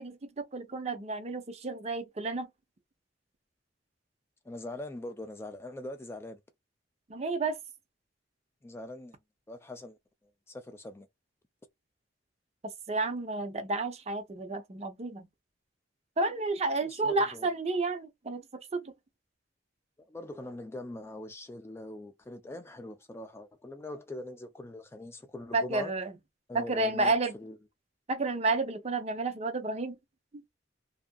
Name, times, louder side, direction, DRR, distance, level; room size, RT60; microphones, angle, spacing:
voice 1, 0.0-2.5 7.1-7.6 12.9-15.3 16.2-18.4 18.7-18.9 25.5-26.1 26.5-27.3 28.1-30.0, right 3 dB, 35° right, 0.5 m, -31 dB
voice 2, 4.5-6.4 8.6-9.1 9.5-10.0 10.5-11.1 16.8-17.5 20.1-25.9 26.5-27.6, left 1 dB, 15° left, 0.3 m, -42 dB
2.6 x 2.4 x 2.2 m
head